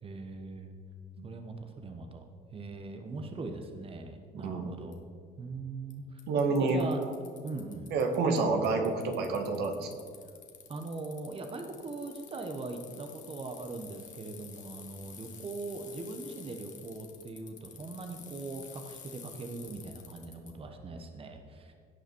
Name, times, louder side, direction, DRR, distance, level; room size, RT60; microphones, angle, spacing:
voice 1, 0.0-0.7 1.2-5.0 5.4-6.2 6.6-7.0 7.4-7.9 10.7-21.7, right 3 dB, 35° right, 5 dB, 1.2 m, -41 dB
voice 2, 4.3-4.7 6.3-7.1 7.9-9.9, right 3 dB, 75° right, 5 dB, 1.7 m, -28 dB
Bicycle, 4.9-5.0 5.9-6.0 6.2-8.4 8.6-20.5, left 7 dB, 50° left, 1.7 m, -50 dB
17.0 x 5.8 x 4.6 m, 2.2 s
cardioid pair, 110°, 17 cm